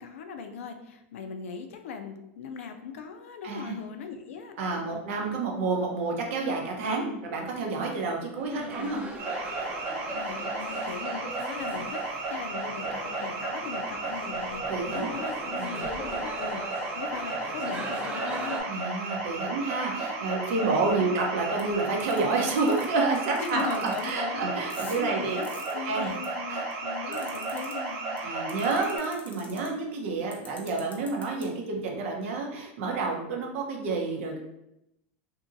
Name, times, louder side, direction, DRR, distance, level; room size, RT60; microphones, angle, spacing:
voice 1, 0.0-5.1 6.9-7.2 8.4-9.0 10.0-12.0 12.3-18.8 20.6-21.2 23.4-24.5 24.8-28.2, left 6 dB, 80° left, 7 dB, 0.4 m, -39 dB
voice 2, 3.4-3.7 4.6-9.0 14.7-15.1 15.6-15.8 18.7-25.4 25.8-26.1 26.5-26.6 27.1-27.2 28.2-34.4, right 3 dB, 70° right, 0 dB, 0.7 m, -29 dB
sound 1, 8.4-18.6, equal, 20° right, 0.7 m, -39 dB
sound 2, 9.2-29.0, right 3 dB, 55° right, 1.1 m, -34 dB
sound 3, 21.6-21.7 22.1-22.2 22.5-22.9 23.4-24.1 24.5-26.3 26.7-27.7 28.2-28.3 28.5-29.7 30.3-31.4, left 3 dB, 20° left, 0.7 m, -46 dB
2.7 x 2.6 x 2.6 m, 0.84 s
hypercardioid pair, 105°, 7 cm